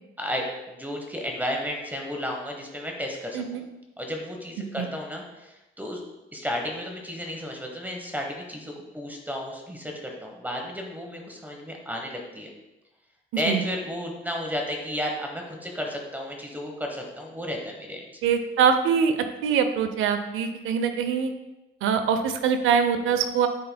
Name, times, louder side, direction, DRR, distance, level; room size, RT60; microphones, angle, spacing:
voice 1, 0.2-3.6 4.0-6.0 6.3-12.5 13.4-18.2, equal, 10° right, 1 dB, 1.0 m, -33 dB
voice 2, 18.2-21.3 21.8-23.5, right 7 dB, 85° right, 8 dB, 0.6 m, -23 dB
10.0 x 4.3 x 2.2 m, 0.99 s
cardioid pair, 90°, 20 cm